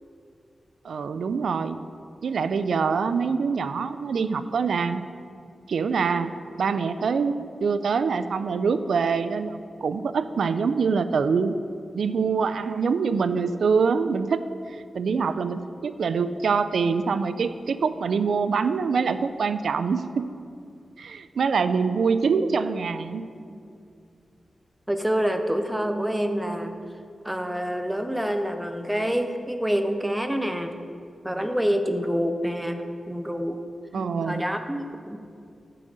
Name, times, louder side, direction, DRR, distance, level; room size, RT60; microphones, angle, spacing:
voice 1, 0.8-1.8 2.2-5.0 5.7-6.3 6.6-11.6 11.9-14.4 14.7-20.3 21.0-23.2 33.9-34.4, right 5 dB, 85° right, 12 dB, 0.3 m, -25 dB
voice 2, 24.9-26.8 27.2-30.8 31.2-33.6 33.9-35.2, equal, 10° right, 6 dB, 0.5 m, -27 dB
9.5 x 3.9 x 6.3 m, 2.4 s
wide cardioid pair, 80°, 0 cm